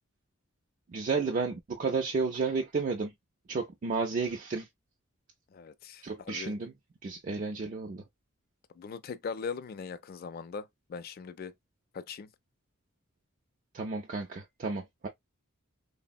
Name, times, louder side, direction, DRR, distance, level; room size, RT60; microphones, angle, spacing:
voice 1, 0.9-3.1 3.5-4.7 6.0-6.7 7.0-8.0 13.7-15.1, right 4 dB, 40° right, 0.4 m, -32 dB
voice 2, 5.5-6.6 8.8-11.5 11.9-12.3, left 5 dB, 45° left, 0.3 m, -40 dB
3.4 x 2.0 x 2.2 m
head